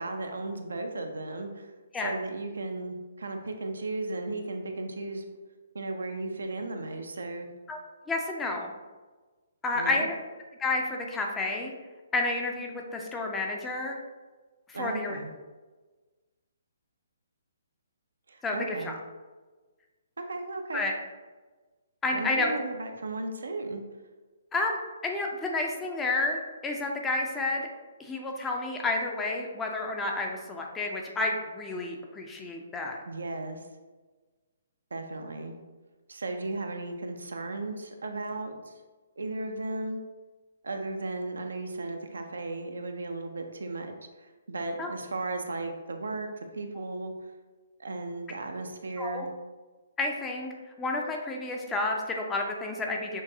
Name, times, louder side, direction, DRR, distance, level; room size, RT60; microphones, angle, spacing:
voice 1, 0.0-1.7 2.0-5.2 5.7-7.5 9.7-10.1 14.7-15.3 18.3-19.0 20.2-20.8 22.1-23.8 33.1-33.7 34.9-35.6 36.1-38.7 39.2-40.0 40.6-43.9 44.2-46.3 46.5-47.3 47.8-49.3, right 2 dB, 65° right, 5 dB, 0.5 m, -35 dB
voice 2, 8.1-8.7 9.6-10.1 10.6-11.7 12.1-14.0 14.7-15.2 18.4-19.0 20.7-20.9 22.0-22.5 24.5-27.6 28.0-33.0 44.8-44.9 49.0-49.3 50.0-50.5 50.8-53.2, left 2 dB, 10° left, 1 dB, 0.5 m, -30 dB
6.3 x 2.6 x 2.7 m, 1.3 s
figure-of-eight pair, 130°, 0 cm